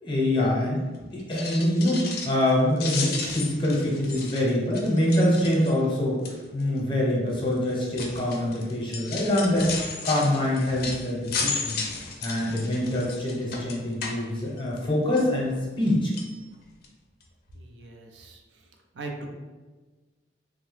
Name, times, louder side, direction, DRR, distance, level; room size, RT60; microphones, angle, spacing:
voice 1, 0.0-11.8 12.2-16.1, left 1 dB, 30° left, -4 dB, 0.7 m, -25 dB
sound 1, 1.2-2.5 2.8-5.9 6.2-6.6 7.3-14.9 15.2-15.9 16.1-16.3 16.8-16.9 17.2-17.3, left 4 dB, 55° left, 0.4 m, -34 dB
voice 2, 17.5-18.4 18.9-19.3, right 3 dB, 70° right, 2 dB, 0.4 m, -39 dB
2.7 x 2.0 x 3.2 m, 1.3 s
head